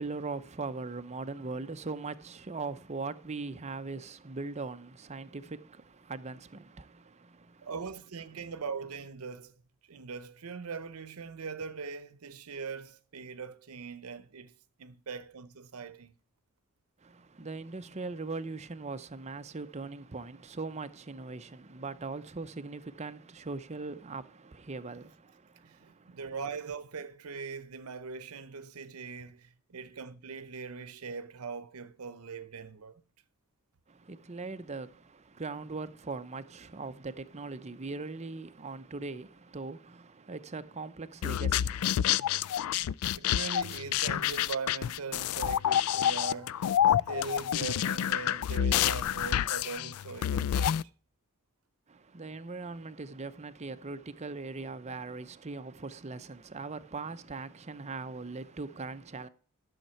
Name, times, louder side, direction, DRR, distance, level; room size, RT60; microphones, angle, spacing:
voice 1, 0.0-7.7 17.0-26.2 33.9-42.8 51.9-59.3, right 3 dB, 30° right, 0.6 m, -40 dB
voice 2, 7.6-9.5 9.9-14.5 14.8-16.1 25.6-33.0 43.1-50.8, right 5 dB, 85° right, 0.7 m, -41 dB
sound 1, 41.2-50.8, left 10 dB, 85° left, 0.3 m, -28 dB
11.5 x 6.6 x 4.4 m
head